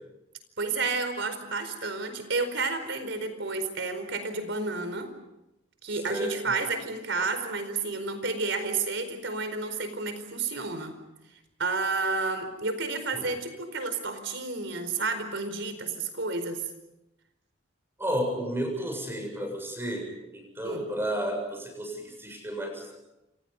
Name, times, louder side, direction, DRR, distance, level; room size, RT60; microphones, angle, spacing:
voice 1, 0.6-5.1 5.8-11.0 11.6-16.6 20.6-20.9, right 3 dB, 70° right, 9 dB, 4.6 m, -31 dB
voice 2, 18.0-20.1 20.3-22.9, equal, 10° right, 3 dB, 7.4 m, -32 dB
29.0 x 27.5 x 5.5 m, 0.91 s
head